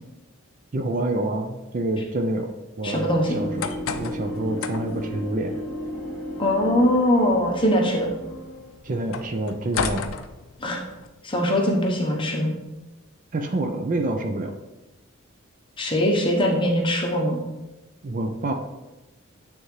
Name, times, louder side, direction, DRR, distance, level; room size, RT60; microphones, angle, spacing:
voice 1, 0.7-2.5 2.8-3.7 4.0-5.6 8.8-10.0 13.3-14.5 18.0-18.5, right 2 dB, 40° right, 5 dB, 0.5 m, -27 dB
voice 2, 2.8-3.4 6.4-8.1 10.6-10.8 11.2-12.5 15.8-17.4, equal, 25° left, -1 dB, 1.0 m, -21 dB
sound 1, 3.0-8.8, equal, 5° left, 1.4 m, -34 dB
sound 2, 3.3-11.1, left 5 dB, 75° left, 0.4 m, -35 dB
8.9 x 3.5 x 3.2 m, 1.0 s
head